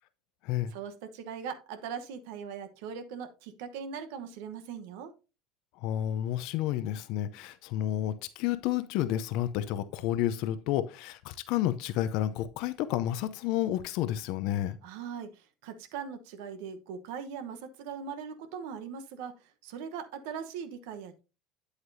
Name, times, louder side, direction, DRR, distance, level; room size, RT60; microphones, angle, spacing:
voice 1, 0.7-5.1 14.8-19.3 19.6-21.2, right 7 dB, 75° right, 9 dB, 1.0 m, -40 dB
voice 2, 5.8-14.8, left 12 dB, 70° left, 12 dB, 0.6 m, -30 dB
8.1 x 8.0 x 2.7 m, 0.30 s
supercardioid pair, 90°, 0 cm